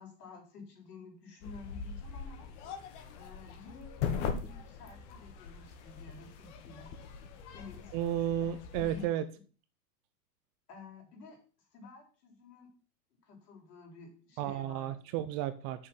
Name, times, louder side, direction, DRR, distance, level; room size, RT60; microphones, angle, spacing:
voice 1, 0.0-2.5 3.1-6.9 7.5-8.5 8.8-9.1 10.7-11.4 11.7-12.7 13.2-14.9, left 4 dB, 75° left, 2 dB, 4.1 m, -51 dB
sound 1, 1.4-9.1, left 6 dB, 45° left, 1.5 m, -41 dB
voice 2, 7.9-9.3 14.4-15.9, right 11 dB, 30° right, 12 dB, 0.5 m, -33 dB
7.2 x 6.5 x 5.7 m, 0.38 s
hypercardioid pair, 130°, 47 cm